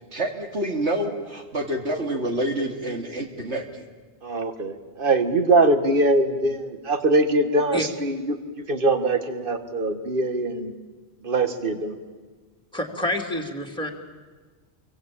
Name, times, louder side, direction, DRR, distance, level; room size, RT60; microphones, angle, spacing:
voice 1, 0.1-3.8, right 1 dB, 80° right, 3 dB, 3.0 m, -27 dB
voice 2, 4.2-10.7 11.2-12.0, right 2 dB, 50° right, 8 dB, 1.8 m, -22 dB
voice 3, 12.7-13.9, left 1 dB, 5° left, 1 dB, 2.8 m, -27 dB
28.0 x 23.5 x 8.8 m, 1.4 s
omnidirectional pair, 1.1 m